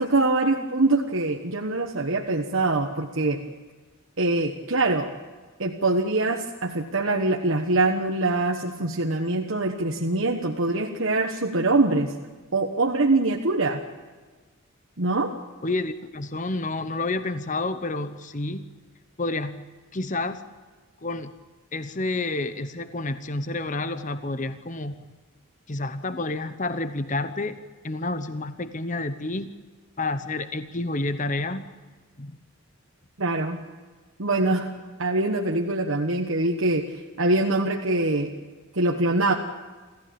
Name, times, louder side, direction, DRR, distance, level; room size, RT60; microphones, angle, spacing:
voice 1, 0.0-3.4 4.2-5.1 5.6-12.1 12.5-13.8 15.0-15.3 33.2-33.6 34.2-34.7 35.0-38.3 38.7-39.3, right 2 dB, 65° right, 2 dB, 1.3 m, -24 dB
voice 2, 15.6-18.7 19.2-19.6 19.9-20.4 21.0-21.3 21.7-24.9 25.7-27.6 27.8-29.5 30.0-31.7 32.2-32.4, left 2 dB, 35° left, 11 dB, 0.9 m, -29 dB
27.0 x 15.0 x 8.6 m, 1.4 s
head